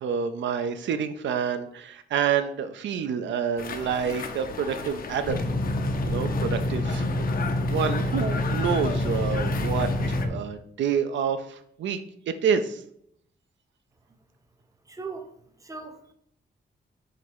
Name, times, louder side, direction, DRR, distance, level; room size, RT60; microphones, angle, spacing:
voice 1, 0.0-5.4 6.1-7.3 7.7-12.0 12.4-12.8, right 7 dB, 85° right, 0.4 m, -28 dB
sound 1, 3.6-10.3, left 5 dB, 50° left, 0.5 m, -36 dB
sound 2, 5.3-10.3, left 1 dB, 75° left, 1.2 m, -27 dB
voice 2, 14.9-15.3 15.6-16.1, right 4 dB, 15° right, 0.6 m, -38 dB
3.8 x 3.1 x 4.5 m
cardioid pair, 105°, 19 cm